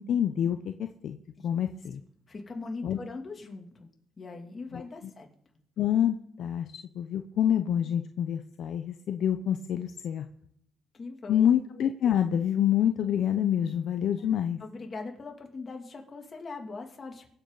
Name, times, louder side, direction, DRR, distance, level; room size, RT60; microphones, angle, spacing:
voice 1, 0.0-1.2 1.4-2.0 2.8-3.0 4.7-4.8 5.8-6.7 6.9-10.2 11.3-14.6, left 9 dB, 70° left, 7 dB, 0.7 m, -27 dB
voice 2, 2.3-3.9 4.2-5.3 10.9-11.5 14.2-17.3, left 3 dB, 35° left, 2 dB, 2.7 m, -41 dB
24.0 x 8.2 x 4.0 m, 0.70 s
cardioid pair, 90°, 0 cm